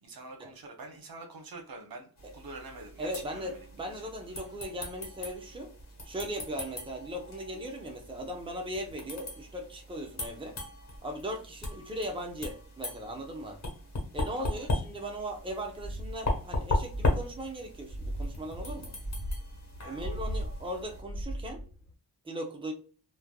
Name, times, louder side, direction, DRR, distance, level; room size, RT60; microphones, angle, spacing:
voice 1, 0.0-3.6 3.9-4.1 14.4-14.7 19.8-20.3, right 3 dB, 60° right, 3 dB, 0.9 m, -46 dB
sound 1, 2.2-21.0, left 2 dB, 40° left, 1.2 m, -37 dB
voice 2, 3.0-5.7 6.0-10.6 11.0-13.6 14.1-18.9 19.8-21.6 22.2-22.7, equal, 15° right, 2 dB, 0.7 m, -38 dB
sound 2, 15.8-21.9, equal, 20° left, 1.3 m, -39 dB
3.3 x 2.3 x 2.3 m, 0.40 s
cardioid pair, 55°, 40 cm